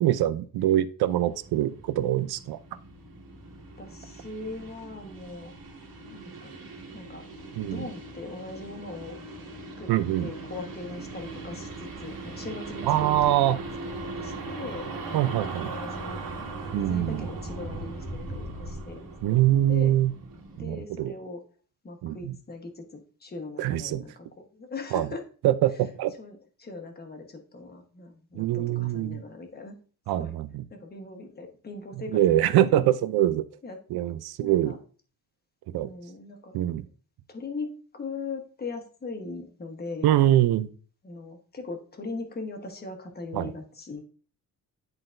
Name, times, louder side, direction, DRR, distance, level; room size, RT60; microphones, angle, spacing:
voice 1, 0.0-2.6 7.5-7.8 9.9-10.3 12.8-13.6 15.1-15.7 16.7-17.2 19.2-20.1 20.6-21.1 22.0-22.4 23.6-24.0 24.9-25.1 25.4-26.1 28.3-29.2 30.1-30.6 32.1-33.5 33.9-34.7 35.7-35.9 36.5-36.9 40.0-40.7 43.3-43.5, right 13 dB, 80° right, 13 dB, 0.6 m, -24 dB
sound 1, 1.1-20.6, right 2 dB, 65° right, 2.0 m, -39 dB
voice 2, 3.8-5.5 6.1-6.6 6.9-7.3 7.7-9.2 9.8-9.9 10.2-13.2 13.8-14.9 15.2-16.2 16.7-19.0 19.3-19.4 19.7-19.9 20.6-21.4 21.8-25.2 26.2-29.7 30.2-30.3 30.7-32.9 33.6-34.1 34.4-34.8 35.7-36.5 37.3-40.1 41.0-44.0, left 3 dB, 25° left, 4 dB, 1.1 m, -40 dB
11.0 x 3.9 x 2.5 m, 0.41 s
cardioid pair, 140°, 38 cm